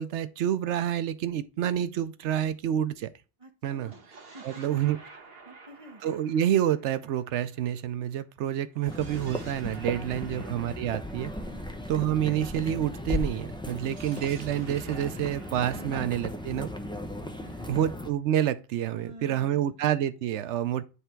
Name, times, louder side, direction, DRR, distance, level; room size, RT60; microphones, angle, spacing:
voice 1, 0.0-3.1 3.6-3.9 4.4-5.0 6.0-11.3 11.9-16.7 17.7-20.8, right 10 dB, 90° right, 0.9 m, -28 dB
voice 2, 3.4-4.0 4.3-4.8 5.4-6.0 9.9-10.3 11.5-11.7 13.7-14.0 15.7-15.9 16.5-16.6 17.2-17.8 18.9-19.8, right 2 dB, 30° right, 1.1 m, -49 dB
sound 1, 3.7-8.2 8.7-12.7 13.7-17.5, right 4 dB, 60° right, 1.5 m, -52 dB
sound 2, 8.8-18.1, left 1 dB, 5° left, 0.6 m, -36 dB
9.7 x 3.4 x 4.5 m
omnidirectional pair, 1.2 m